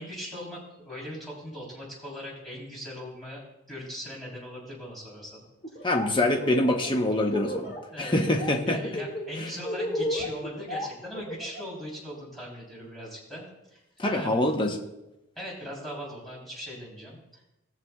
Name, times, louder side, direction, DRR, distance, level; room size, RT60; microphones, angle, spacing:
voice 1, 0.0-5.4 7.9-8.2 8.7-13.4 13.7-14.3 15.4-17.2, equal, ahead, -5 dB, 3.3 m, -39 dB
Laughter, 5.6-6.1 6.4-7.8 8.1-8.5 8.8-11.7, left 1 dB, 45° left, 3.1 m, -33 dB
voice 2, 5.8-8.8 9.4-9.5 14.0-14.8, left 1 dB, 25° left, 2 dB, 0.8 m, -25 dB
19.0 x 6.9 x 2.3 m, 0.93 s
head